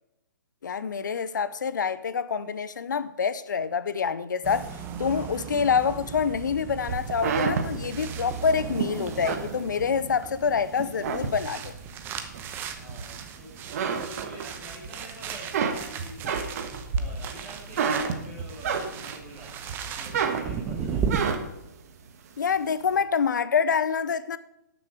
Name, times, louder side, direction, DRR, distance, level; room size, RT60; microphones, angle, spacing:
voice 1, 0.6-4.7 5.0-11.7 22.4-24.4, left 6 dB, 75° left, 0.7 m, -26 dB
sound 1, 4.4-21.2, right 7 dB, 20° right, 0.9 m, -37 dB
sound 2, 6.9-10.3 10.7-11.8 12.3-13.3 13.6-14.9 15.2-19.3 19.7-21.7, right 6 dB, 55° right, 1.4 m, -30 dB
voice 2, 12.7-13.5 13.9-16.7 16.9-21.1, right 1 dB, 5° left, 4.6 m, -46 dB
12.0 x 7.0 x 4.8 m
hypercardioid pair, 140°, 10 cm